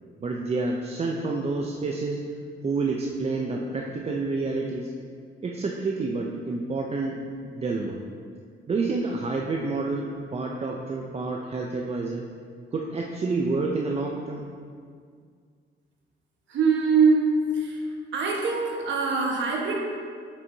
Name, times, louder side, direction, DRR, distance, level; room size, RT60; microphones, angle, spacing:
voice 1, 0.2-2.3 2.6-4.9 5.4-8.0 8.7-12.3 12.7-14.5, right 3 dB, 30° right, 0 dB, 0.5 m, -29 dB
voice 2, 16.5-17.8 18.1-19.7, right 4 dB, 70° right, -1 dB, 1.3 m, -23 dB
7.7 x 6.1 x 2.7 m, 2.1 s
cardioid pair, 90°, 20 cm